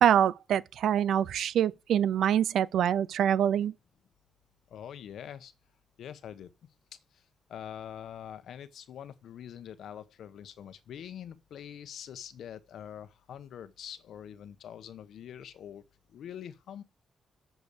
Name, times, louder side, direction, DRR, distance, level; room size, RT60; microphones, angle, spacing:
voice 1, 0.0-3.7, right 9 dB, 75° right, 0.5 m, -25 dB
voice 2, 4.7-5.5 6.0-6.5 7.5-15.8 16.1-16.8, left 9 dB, 70° left, 1.1 m, -44 dB
8.2 x 6.2 x 6.8 m
wide cardioid pair, 160°, 0 cm